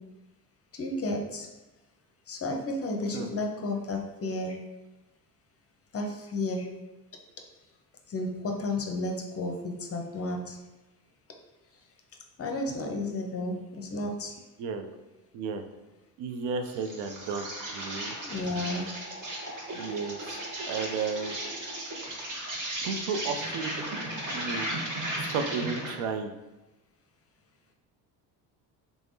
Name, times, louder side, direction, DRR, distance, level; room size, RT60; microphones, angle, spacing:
voice 1, 0.7-1.5 2.3-4.6 5.9-6.7 8.1-10.6 12.4-14.3 18.2-18.9, left 2 dB, 30° left, 2 dB, 0.6 m, -32 dB
voice 2, 16.2-18.1 19.7-20.2 20.7-21.4 22.8-24.0 24.3-24.7 25.2-26.3, right 5 dB, 65° right, 6 dB, 0.5 m, -33 dB
Insect, 16.6-26.0, right 1 dB, 35° right, 1.1 m, -36 dB
3.4 x 3.3 x 2.6 m, 1.1 s
hypercardioid pair, 55°, 50 cm